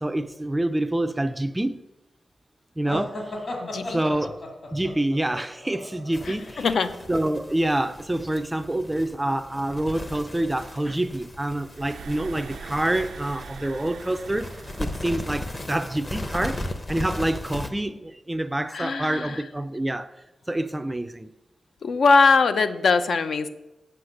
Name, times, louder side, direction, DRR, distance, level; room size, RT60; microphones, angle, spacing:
voice 1, 0.0-1.8 2.8-3.2 3.9-4.4 4.7-6.7 7.1-14.5 14.8-20.1 20.5-21.3, right 1 dB, 10° right, 0.4 m, -27 dB
sound 1, 2.8-6.5, left 1 dB, 50° left, 2.2 m, -35 dB
voice 2, 3.6-4.0 6.3-6.9 18.7-19.4 21.8-23.5, left 4 dB, 70° left, 0.6 m, -21 dB
sound 2, 6.1-17.7, left 1 dB, 25° left, 0.8 m, -37 dB
sound 3, 10.6-16.8, right 5 dB, 85° right, 0.4 m, -44 dB
7.8 x 5.8 x 6.4 m
wide cardioid pair, 135°, 0 cm